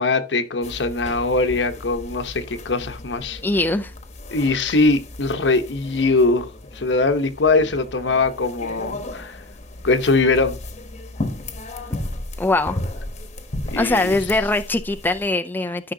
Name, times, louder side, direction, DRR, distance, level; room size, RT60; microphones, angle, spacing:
voice 1, 0.0-3.4 4.3-9.4 9.8-10.6 13.7-14.1, left 3 dB, 85° left, 1.0 m, -21 dB
sound 1, 0.6-15.3, left 1 dB, 40° left, 1.1 m, -35 dB
voice 2, 3.4-3.9 12.4-12.8 13.8-15.9, left 2 dB, 10° left, 0.4 m, -21 dB
13.0 x 5.8 x 2.8 m
head